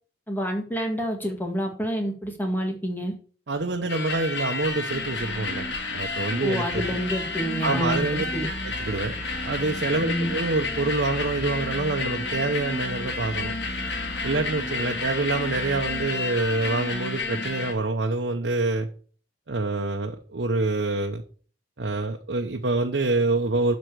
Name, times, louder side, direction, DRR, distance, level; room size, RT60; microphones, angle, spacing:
voice 1, 0.3-3.1 6.4-8.5 10.0-10.3, equal, 10° left, 3 dB, 1.8 m, -28 dB
voice 2, 3.5-7.0 7.6-8.2 8.6-9.1 9.4-13.5 14.2-18.9 19.5-21.2 21.8-23.8, right 3 dB, 80° right, 2 dB, 0.9 m, -26 dB
sound 1, 3.9-17.7, left 3 dB, 75° left, 1.7 m, -31 dB
sound 2, 6.7-17.0, right 3 dB, 35° right, 0.7 m, -41 dB
7.8 x 5.2 x 6.7 m, 0.42 s
head